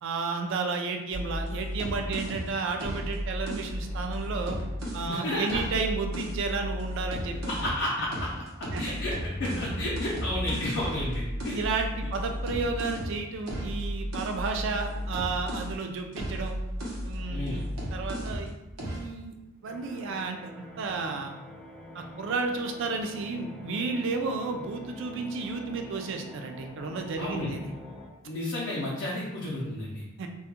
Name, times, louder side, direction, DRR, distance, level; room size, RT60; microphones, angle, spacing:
voice 1, 0.0-4.6 4.9-7.5 8.7-8.8 11.5-16.6 17.0-19.3 19.6-21.4 21.9-27.6 30.2-30.3, right 4 dB, 65° right, 4 dB, 0.3 m, -32 dB
sound 1, 1.1-5.1 5.5-7.8 8.1-15.8 16.1-18.5 18.8-19.1, equal, 90° right, 0.7 m, -34 dB
voice 2, 5.1-5.6 7.5-8.3 8.6-11.6 17.3-17.7 27.2-27.5 28.2-30.0, left 1 dB, 60° left, -5 dB, 0.4 m, -32 dB
sound 2, 19.6-28.1, left 1 dB, 5° left, 0.5 m, -46 dB
2.3 x 2.1 x 2.8 m, 0.97 s
head